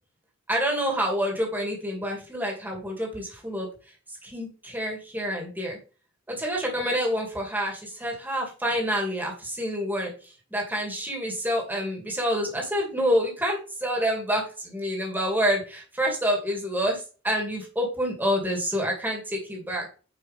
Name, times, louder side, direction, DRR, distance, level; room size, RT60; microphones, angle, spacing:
voice 1, 0.5-3.7 4.2-5.8 6.3-10.1 10.5-19.9, equal, 10° right, -1 dB, 2.6 m, -27 dB
9.7 x 5.2 x 3.6 m, 0.37 s
head